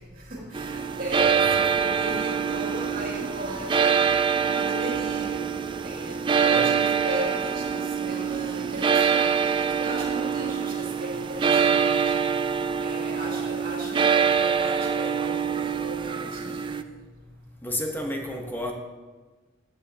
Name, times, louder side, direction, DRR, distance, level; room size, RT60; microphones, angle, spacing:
voice 1, 0.0-5.5 5.8-17.0, right 1 dB, 45° right, -2 dB, 2.4 m, -36 dB
sound 1, 0.5-16.8, right 6 dB, 25° right, 0.3 m, -25 dB
voice 2, 17.6-18.7, left 1 dB, 10° left, 2 dB, 1.1 m, -30 dB
14.0 x 8.5 x 2.9 m, 1.3 s
head